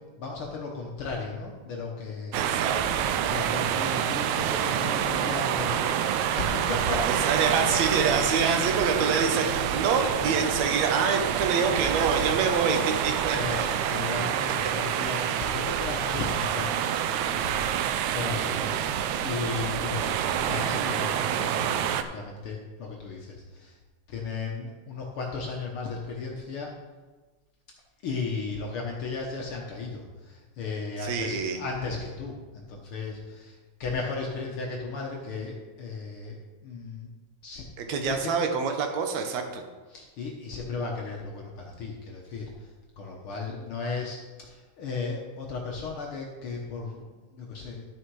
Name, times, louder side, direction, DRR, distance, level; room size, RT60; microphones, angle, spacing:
voice 1, 0.0-2.7 3.0-7.3 7.6-7.9 8.2-8.4 13.3-23.7 24.1-26.7 28.0-36.4 36.6-37.1 37.4-38.3 39.9-42.5 43.0-47.8, left 4 dB, 70° left, -1 dB, 1.3 m, -35 dB
voice 2, 2.3-3.0 7.0-13.6 14.2-14.3 31.0-31.6 37.8-39.6, right 5 dB, 65° right, 5 dB, 2.0 m, -26 dB
sound 1, 2.3-22.0, right 9 dB, 80° right, 1.7 m, -27 dB
11.5 x 6.3 x 4.7 m, 1.3 s
omnidirectional pair, 3.8 m